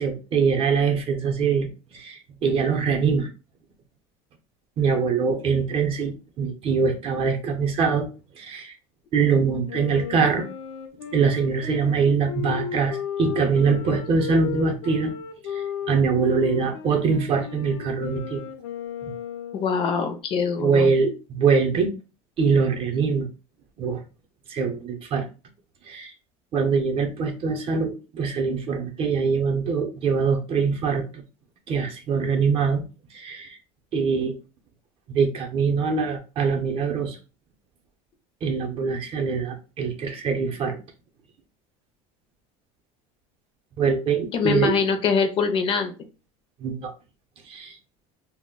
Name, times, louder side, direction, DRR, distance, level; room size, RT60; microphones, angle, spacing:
voice 1, 0.0-3.3 4.8-8.1 8.4-8.7 9.1-10.5 11.1-15.1 15.5-18.4 19.0-19.1 20.6-21.9 22.4-23.3 23.8-24.0 24.5-25.3 25.9-26.1 26.5-31.2 31.7-32.8 33.1-33.6 33.9-34.4 35.1-37.2 38.4-40.8 43.8-44.7 46.6-46.9 47.4-47.8, right 5 dB, 40° right, 0.6 m, -23 dB
Wind instrument woodwind instrument, 9.7-19.7, left 8 dB, 90° left, 0.5 m, -35 dB
voice 2, 19.5-20.9 44.3-45.9, left 5 dB, 40° left, 0.4 m, -23 dB
2.2 x 2.1 x 3.6 m
cardioid pair, 145°, 15 cm